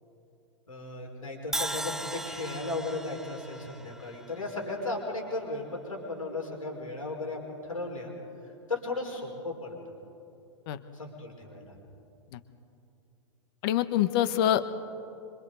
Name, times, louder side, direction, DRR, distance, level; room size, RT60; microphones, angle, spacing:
voice 1, 0.7-8.1 8.7-9.7 10.9-11.7, left 2 dB, 85° left, 0 dB, 4.9 m, -35 dB
Crash cymbal, 1.5-5.6, right 1 dB, 5° right, 0.4 m, -38 dB
voice 2, 13.6-14.8, left 11 dB, 45° left, 12 dB, 1.2 m, -25 dB
26.5 x 25.0 x 4.0 m, 2.8 s
figure-of-eight pair, 105°, 17 cm